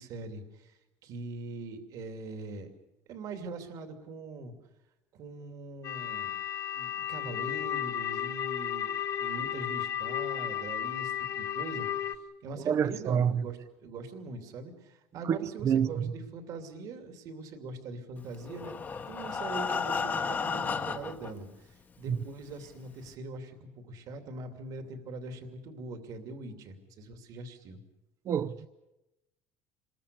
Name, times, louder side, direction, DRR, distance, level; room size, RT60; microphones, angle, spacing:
voice 1, 0.0-2.7 3.1-4.5 5.1-6.3 6.7-18.7 19.1-27.8, right 3 dB, 55° right, 2.7 m, -42 dB
sound 1, 5.8-12.1, left 10 dB, 45° left, 1.1 m, -34 dB
voice 2, 12.7-13.4 15.3-15.4 15.6-16.1 22.1-22.2 28.3-28.7, right 8 dB, 40° right, 0.8 m, -27 dB
Breathing, 18.4-21.3 22.1-22.2 22.5-22.6 23.1-23.2, left 5 dB, 25° left, 1.2 m, -33 dB
27.0 x 21.5 x 6.9 m
cardioid pair, 140°, 7 cm